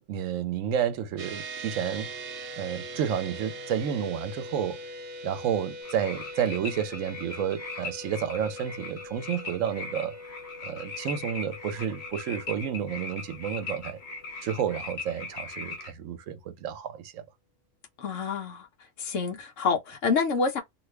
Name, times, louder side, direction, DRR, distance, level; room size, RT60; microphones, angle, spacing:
voice 1, 0.0-2.2 2.6-4.8 5.2-10.2 10.6-14.0 14.4-17.2, right 8 dB, 75° right, 1.0 m, -31 dB
sound 1, 1.2-14.8, right 1 dB, 60° right, 0.7 m, -42 dB
sound 2, 5.8-15.9, left 4 dB, 55° left, 1.3 m, -40 dB
voice 2, 18.0-18.7 19.0-20.6, left 5 dB, 75° left, 1.2 m, -27 dB
2.8 x 2.4 x 3.3 m
omnidirectional pair, 1.4 m